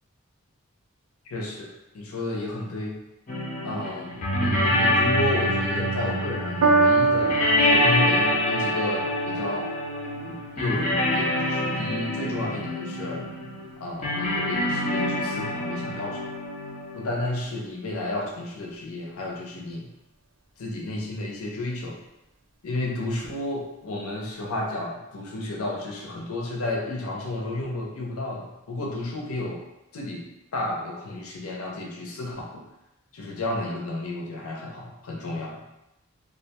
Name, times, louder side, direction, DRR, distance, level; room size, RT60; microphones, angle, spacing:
voice 1, 1.3-3.0 3.6-7.4 7.7-9.7 10.2-13.3 13.8-16.3 16.9-19.9 20.6-22.0 22.6-29.6 29.9-30.2 30.5-32.6 33.1-35.6, left 2 dB, 85° left, -1 dB, 0.6 m, -32 dB
sound 1, 3.3-17.4, left 1 dB, 35° left, 0.4 m, -26 dB
Piano, 6.6-13.2 14.0-14.1, right 3 dB, 85° right, 0.4 m, -27 dB
2.4 x 2.2 x 2.8 m, 0.93 s
head